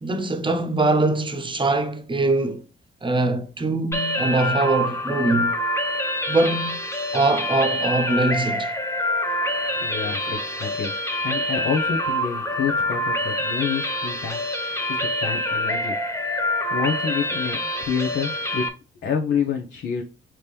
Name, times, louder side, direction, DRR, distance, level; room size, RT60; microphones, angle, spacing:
voice 1, 0.0-2.6 3.0-5.5 6.3-6.8 7.1-8.7, right 2 dB, 25° right, 0.9 m, -22 dB
sound 1, 3.9-18.7, left 1 dB, 15° left, 0.9 m, -26 dB
voice 2, 9.8-10.9 11.2-16.0 16.5-18.7 19.0-20.0, left 6 dB, 65° left, 0.9 m, -28 dB
5.0 x 3.0 x 3.3 m
cardioid pair, 90°, 20 cm